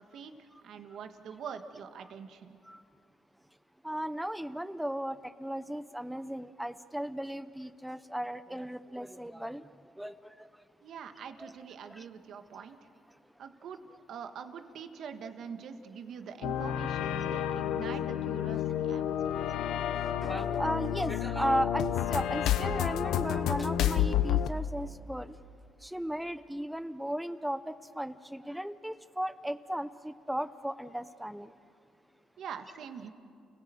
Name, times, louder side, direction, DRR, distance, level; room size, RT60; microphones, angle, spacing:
voice 1, 0.1-2.6 10.8-12.8 13.4-13.8 14.1-19.4 32.4-33.1, right 7 dB, 70° right, 8 dB, 1.5 m, -44 dB
voice 2, 3.8-9.7 10.0-10.5 11.4-11.5 11.9-12.0 20.2-25.4 25.8-31.5, right 1 dB, 5° right, 14 dB, 0.7 m, -35 dB
sound 1, 16.4-24.5, left 10 dB, 85° left, 0.8 m, -30 dB
29.5 x 17.0 x 7.8 m, 2.5 s
cardioid pair, 90°, 0 cm